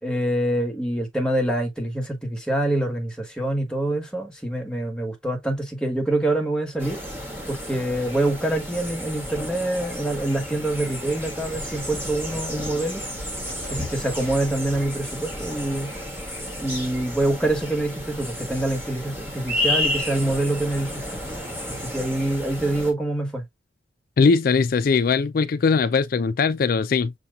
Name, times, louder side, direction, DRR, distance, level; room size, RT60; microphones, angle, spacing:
voice 1, 0.0-7.0 7.5-13.0 13.7-15.9 16.6-21.2 21.9-23.4, right 1 dB, 5° left, 1.3 m, -25 dB
sound 1, 6.8-22.9, left 1 dB, 10° right, 1.4 m, -32 dB
sound 2, 11.4-17.7 18.0-20.0, equal, 50° right, 3.5 m, -45 dB
voice 2, 24.2-27.1, left 5 dB, 50° left, 0.3 m, -20 dB
6.5 x 2.9 x 2.3 m
head